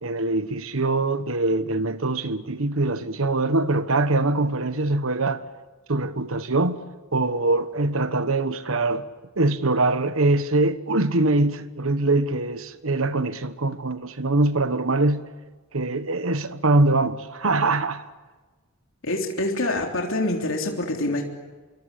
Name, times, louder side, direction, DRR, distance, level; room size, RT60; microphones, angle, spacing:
voice 1, 0.0-5.4 5.9-6.8 7.1-9.1 9.4-15.3 15.7-18.0, right 2 dB, 70° right, 1.3 m, -23 dB
voice 2, 19.0-21.2, left 1 dB, 65° left, 3.5 m, -25 dB
26.5 x 24.0 x 8.4 m
head